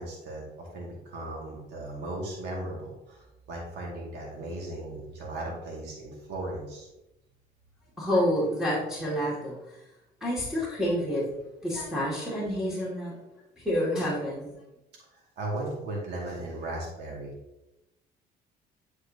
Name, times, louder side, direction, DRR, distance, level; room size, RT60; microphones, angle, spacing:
voice 1, 0.0-6.9 15.4-17.3, right 2 dB, 80° right, -3 dB, 2.1 m, -37 dB
voice 2, 8.0-9.6 10.2-11.2 11.6-13.2 13.6-14.5, equal, ahead, -7 dB, 2.1 m, -28 dB
10.5 x 4.7 x 2.8 m, 0.93 s
cardioid pair, 110°, 17 cm